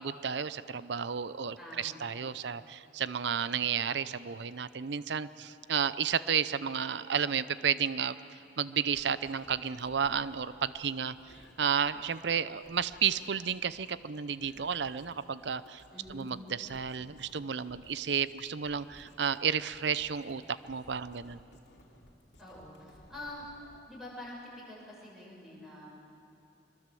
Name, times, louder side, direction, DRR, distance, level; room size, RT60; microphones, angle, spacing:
voice 1, 0.0-11.2 11.6-15.8 16.1-21.4, right 7 dB, 65° right, 16 dB, 0.6 m, -32 dB
voice 2, 1.6-2.0 15.9-16.3 22.4-23.5 23.9-24.4 24.7-25.9, left 1 dB, ahead, -5 dB, 6.2 m, -46 dB
sound 1, 8.9-23.8, left 1 dB, 60° left, 2.9 m, -59 dB
24.0 x 22.0 x 7.7 m, 2.7 s
head